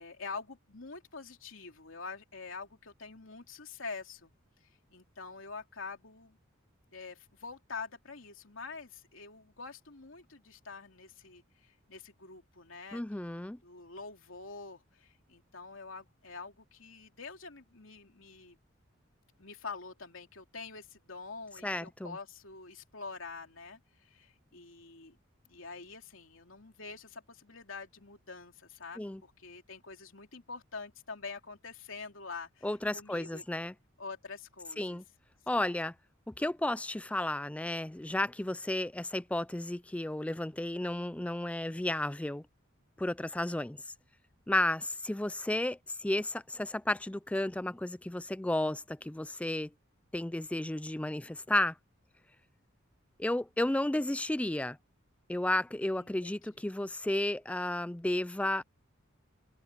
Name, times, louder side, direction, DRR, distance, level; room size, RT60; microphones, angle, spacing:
voice 1, 0.0-4.3 4.6-6.4 6.9-18.6 19.4-25.2 25.4-33.4 34.0-35.0 35.5-35.8 56.0-56.4, left 4 dB, 75° left, 3.0 m, -46 dB
voice 2, 12.9-13.6 21.6-22.2 29.0-29.2 32.6-33.7 34.8-35.0 35.5-35.9 36.3-42.5 43.0-43.8 44.5-49.7 50.1-51.8 53.2-54.8 55.3-58.6, left 1 dB, 5° left, 0.4 m, -33 dB
head